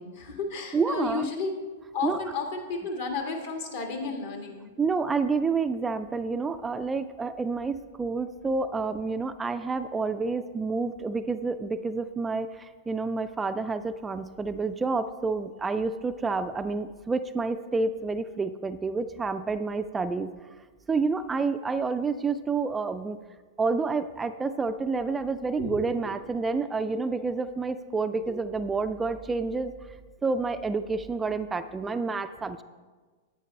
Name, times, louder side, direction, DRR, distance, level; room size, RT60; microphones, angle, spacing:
voice 1, 0.0-1.5 1.9-4.7 25.6-25.8 28.3-28.4, left 4 dB, 60° left, 3 dB, 1.6 m, -33 dB
voice 2, 0.7-1.3 2.0-2.2 4.8-20.3 20.9-23.2 23.6-29.7 30.2-32.6, right 4 dB, 15° right, 10 dB, 0.3 m, -29 dB
10.5 x 8.7 x 3.2 m, 1.4 s
figure-of-eight pair, 100°, 0 cm